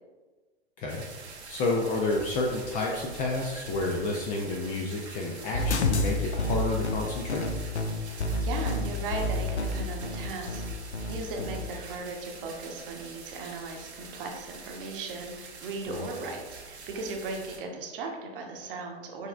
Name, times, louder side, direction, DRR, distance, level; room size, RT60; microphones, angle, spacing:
voice 1, 0.8-7.5 15.9-16.1, left 2 dB, 25° left, -1 dB, 0.4 m, -30 dB
sound 1, 0.9-17.6, right 4 dB, 80° right, 1.0 m, -45 dB
sound 2, 5.5-11.6, left 2 dB, 90° left, 0.5 m, -29 dB
voice 2, 8.4-10.6 11.1-19.3, right 3 dB, 55° right, 2 dB, 1.0 m, -37 dB
6.4 x 3.1 x 2.4 m, 1.3 s
figure-of-eight pair, 105°, 33 cm